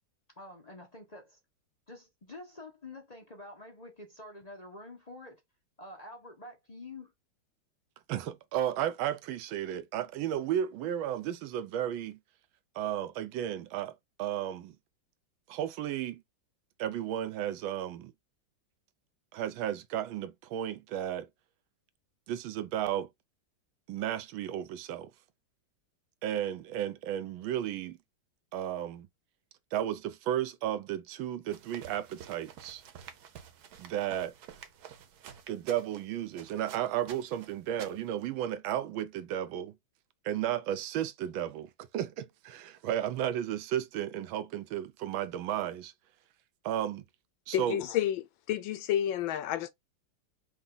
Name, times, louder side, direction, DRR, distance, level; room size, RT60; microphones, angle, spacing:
voice 1, 0.4-1.4 1.9-5.4 5.8-7.1, left 2 dB, 40° left, 0.5 m, -47 dB
voice 2, 8.1-12.2 12.7-13.9 14.2-14.8 15.5-16.2 16.8-18.1 19.3-21.3 22.3-23.1 23.9-25.1 26.2-28.0 28.5-29.1 29.7-32.8 33.8-34.3 35.5-39.7 40.2-45.9 46.6-47.0 47.5-47.8, right 11 dB, 85° right, 1.4 m, -33 dB
sound 1, 31.5-38.3, right 8 dB, 65° right, 1.2 m, -50 dB
voice 3, 47.5-48.2 48.5-49.7, left 11 dB, 85° left, 1.4 m, -30 dB
5.0 x 2.3 x 3.8 m
omnidirectional pair, 2.1 m